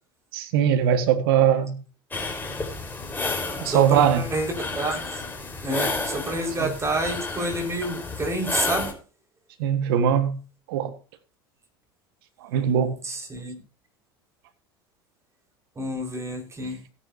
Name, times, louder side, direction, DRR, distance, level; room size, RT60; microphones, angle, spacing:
voice 1, 0.3-1.7 3.6-4.2 6.6-6.7 9.6-10.4 10.7-10.9 12.4-13.0, right 9 dB, 75° right, 1.6 m, -21 dB
sound 1, 2.1-8.9, left 3 dB, 15° left, 4.5 m, -31 dB
voice 2, 3.7-5.2 5.6-8.9 13.0-13.6 15.8-16.8, right 1 dB, 25° right, 5.2 m, -29 dB
17.5 x 9.9 x 2.8 m
hypercardioid pair, 85°, 12 cm